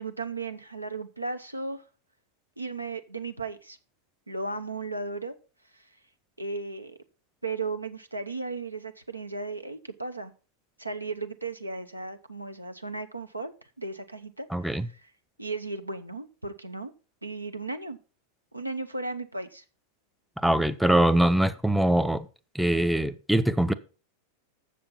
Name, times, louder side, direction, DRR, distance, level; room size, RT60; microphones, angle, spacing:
voice 1, 0.0-1.9 2.6-3.8 4.3-5.3 5.7-6.0 6.4-7.0 7.4-10.3 10.8-15.1 15.4-16.9 17.2-18.0 18.5-19.6, right 3 dB, 85° right, 0.7 m, -35 dB
voice 2, 14.5-14.8 20.4-22.3 22.5-23.7, right 1 dB, ahead, 0.5 m, -23 dB
7.5 x 6.9 x 5.4 m
figure-of-eight pair, 90°, 0 cm